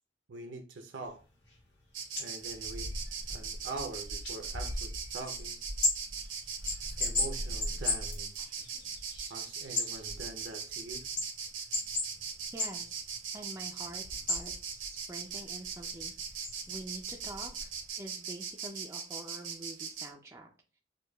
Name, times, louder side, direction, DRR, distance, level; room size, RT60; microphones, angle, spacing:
voice 1, 0.3-1.2 2.2-2.9 3.3-5.6 7.0-8.6 9.3-11.1, right 3 dB, 70° right, 5 dB, 0.5 m, -44 dB
sound 1, 1.0-1.2 1.4-17.9, left 2 dB, 65° left, 1.1 m, -37 dB
Insect, 1.9-20.1, right 6 dB, 90° right, 0.9 m, -40 dB
voice 2, 12.5-13.1 13.3-16.4 16.7-17.7 18.0-20.5, right 1 dB, 15° right, 1 dB, 0.3 m, -46 dB
6.3 x 2.2 x 2.2 m, 0.35 s
head